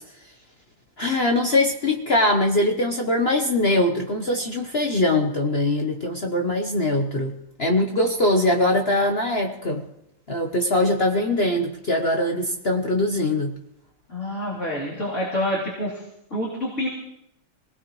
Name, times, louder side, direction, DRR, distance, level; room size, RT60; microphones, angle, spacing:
voice 1, 1.0-9.8 10.3-13.5, left 1 dB, 50° left, 3 dB, 0.7 m, -22 dB
voice 2, 14.1-16.0 16.3-16.9, left 1 dB, 30° left, -6 dB, 3.5 m, -27 dB
24.5 x 18.5 x 3.1 m, 0.80 s
omnidirectional pair, 2.4 m